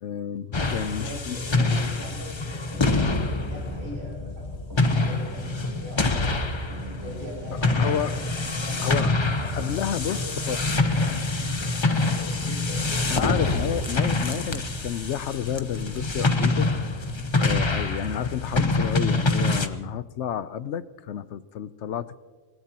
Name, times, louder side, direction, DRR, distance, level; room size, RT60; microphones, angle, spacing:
voice 1, 0.0-1.9 7.8-8.2 8.8-9.1 9.5-10.6 13.1-16.7 17.3-22.2, left 9 dB, 70° left, 15 dB, 0.9 m, -30 dB
sound 1, 0.5-19.7, left 2 dB, 25° left, 0.8 m, -26 dB
voice 2, 0.9-4.7 5.0-6.5 7.0-10.6 10.9-13.1, left 1 dB, 85° right, -2 dB, 7.4 m, -42 dB
sound 2, 2.4-10.1, equal, 15° right, 3.6 m, -42 dB
25.5 x 19.0 x 2.9 m, 1.5 s
omnidirectional pair, 1.3 m